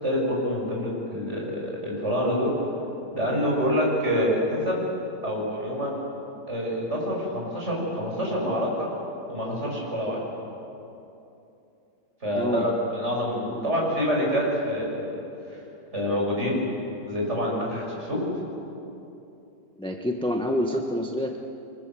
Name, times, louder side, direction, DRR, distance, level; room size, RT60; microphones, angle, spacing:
voice 1, 0.0-2.5 3.2-4.8 5.2-6.0 6.5-8.9 9.3-10.3 12.2-15.2 15.9-16.6 17.1-18.2, equal, 40° right, -3 dB, 7.7 m, -26 dB
voice 2, 12.3-12.7 13.5-13.7 19.8-21.4, left 1 dB, 5° left, 2 dB, 1.2 m, -27 dB
29.5 x 24.0 x 7.7 m, 2.8 s
omnidirectional pair, 1.9 m